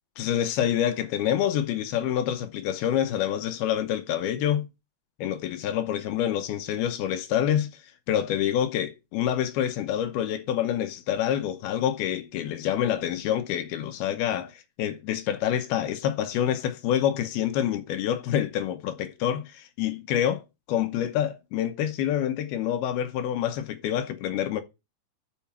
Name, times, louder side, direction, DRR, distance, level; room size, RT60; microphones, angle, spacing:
voice 1, 0.2-4.7 5.2-7.7 8.1-20.4 20.7-24.6, left 10 dB, 75° left, 2.6 m, -27 dB
7.1 x 5.6 x 7.0 m
omnidirectional pair, 5.0 m